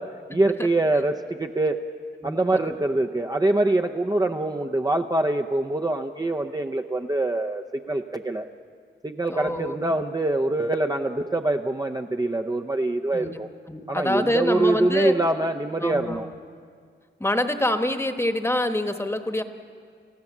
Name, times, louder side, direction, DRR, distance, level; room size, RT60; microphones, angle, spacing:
voice 1, 0.0-1.8 2.2-8.5 9.0-13.5 13.9-16.3, right 2 dB, 20° right, 3 dB, 0.6 m, -24 dB
voice 2, 2.2-2.8 9.3-9.9 13.1-13.4 13.7-15.2 15.8-16.3 17.2-19.4, left 1 dB, 15° left, 7 dB, 1.2 m, -26 dB
29.5 x 15.5 x 7.3 m, 2.1 s
wide cardioid pair, 95°, 19 cm